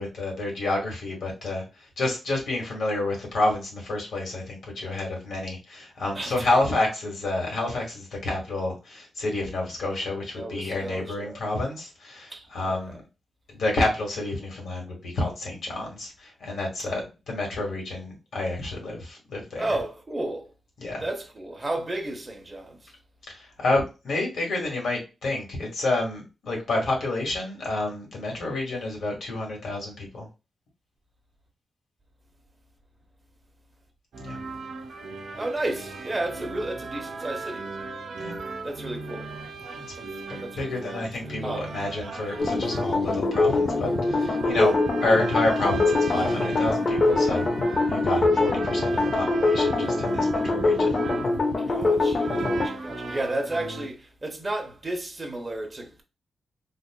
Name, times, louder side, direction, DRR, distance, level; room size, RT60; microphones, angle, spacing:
voice 1, 0.0-13.0 13.5-19.7 20.8-21.0 23.3-30.3 34.2-34.4 38.2-38.3 39.7-39.9 40.3-47.5 47.9-51.0, left 2 dB, 75° left, 1.6 m, -29 dB
voice 2, 6.1-6.6 10.3-11.4 12.3-12.8 19.6-20.5 21.0-22.9 35.4-37.7 38.6-39.3 40.0-40.1 40.4-40.9 41.4-41.7 51.7-56.0, right 2 dB, 20° right, 0.8 m, -33 dB
sound 1, 34.1-53.9, right 3 dB, 90° right, 0.9 m, -37 dB
sound 2, 42.4-52.7, left 3 dB, 40° left, 0.6 m, -23 dB
4.1 x 2.5 x 2.2 m
wide cardioid pair, 155°, 0 cm